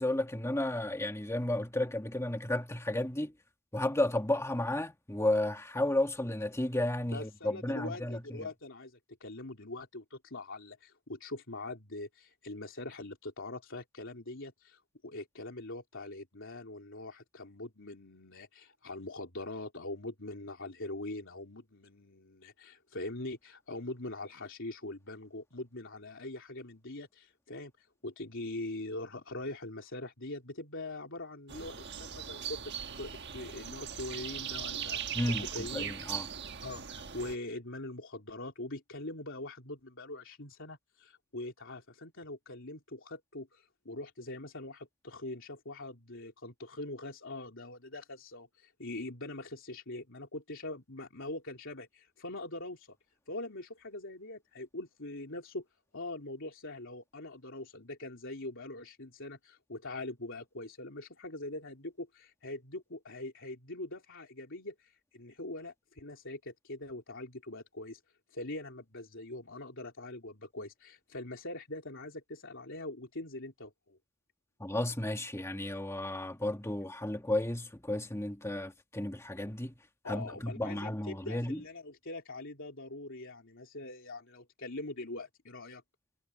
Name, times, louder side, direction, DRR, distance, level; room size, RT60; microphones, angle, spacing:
voice 1, 0.0-3.3 3.7-8.5 35.1-36.3 74.6-79.7 80.1-81.6, left 1 dB, 15° left, 1.6 m, -33 dB
voice 2, 7.1-32.7 33.0-36.2 36.6-53.0 53.3-55.6 55.9-68.0 68.3-74.0 80.0-85.8, left 2 dB, 65° left, 3.7 m, -43 dB
sound 1, 31.5-37.4, right 8 dB, 55° right, 1.4 m, -39 dB
head